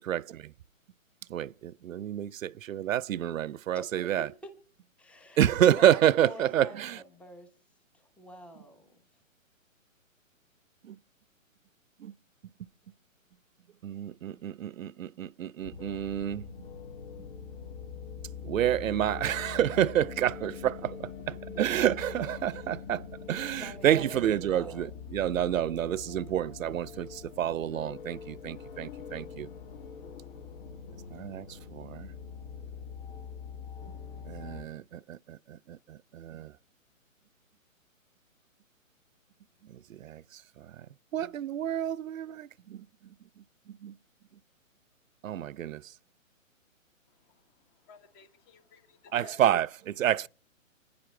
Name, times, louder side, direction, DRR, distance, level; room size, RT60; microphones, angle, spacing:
voice 1, 0.1-0.5 1.3-4.3 5.4-7.0 10.8-11.0 12.0-12.1 13.8-16.5 18.4-29.5 31.1-32.1 34.3-36.5 39.9-40.9 41.1-42.8 43.7-43.9 45.2-45.9 49.1-50.3, right 11 dB, 75° right, 0.5 m, -29 dB
voice 2, 3.7-4.5 5.0-7.5 7.9-9.0 23.6-24.2 24.5-24.9 29.2-29.6, equal, 5° left, 1.0 m, -48 dB
sound 1, 15.6-34.6, left 6 dB, 40° left, 1.6 m, -43 dB
voice 3, 47.1-49.4, left 5 dB, 20° left, 1.3 m, -56 dB
29.0 x 10.5 x 2.3 m
hypercardioid pair, 145°, 40 cm